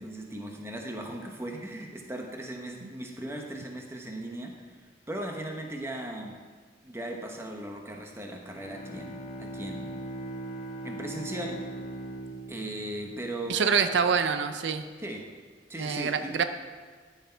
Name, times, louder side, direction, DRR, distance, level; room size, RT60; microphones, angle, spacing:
voice 1, 0.0-4.6 5.1-6.4 6.8-10.0 10.8-11.6 12.5-13.7 15.0-15.3 15.7-16.4, right 1 dB, 15° right, 2 dB, 0.9 m, -38 dB
Bowed string instrument, 8.4-14.0, right 1 dB, 35° left, 0.8 m, -40 dB
voice 2, 13.5-14.8 15.8-16.4, right 6 dB, 85° right, 9 dB, 0.5 m, -26 dB
13.0 x 5.8 x 4.5 m, 1.5 s
head